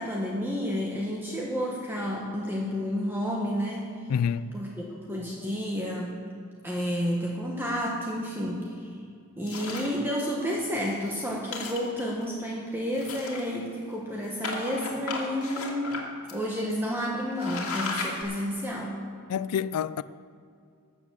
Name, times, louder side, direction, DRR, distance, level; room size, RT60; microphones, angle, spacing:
voice 1, 0.0-3.9 4.5-6.2 6.6-8.9 9.4-16.0 16.3-19.0, equal, 10° right, 1.1 m, -31 dB
voice 2, 4.1-4.5 19.3-20.0, left 7 dB, 80° left, 0.4 m, -27 dB
sound 1, 9.5-10.0 10.5-10.6 10.9-11.1 11.4-12.2 12.9-13.7 14.4-16.0 16.3-16.4 16.9-17.0 17.3-18.2, left 3 dB, 65° left, 2.1 m, -34 dB
13.0 x 7.1 x 7.3 m
head